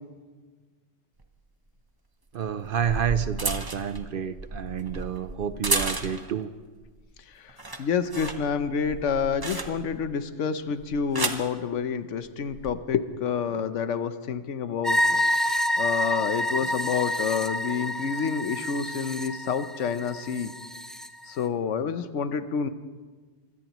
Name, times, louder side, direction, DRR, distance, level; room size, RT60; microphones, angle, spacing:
sound 1, 1.2-1.3 2.5-6.4 6.8-7.2 7.5-10.1 10.8-11.5 12.4-12.7, right 2 dB, 20° right, 0.8 m, -33 dB
voice 1, 2.3-6.5, right 8 dB, 60° right, 12 dB, 0.7 m, -29 dB
voice 2, 7.8-15.2 15.8-20.5 21.3-22.7, left 6 dB, 85° left, 11 dB, 1.1 m, -28 dB
sound 2, 14.8-21.1, left 1 dB, ahead, 0.4 m, -28 dB
24.5 x 17.0 x 3.0 m, 1.4 s
omnidirectional pair, 1.2 m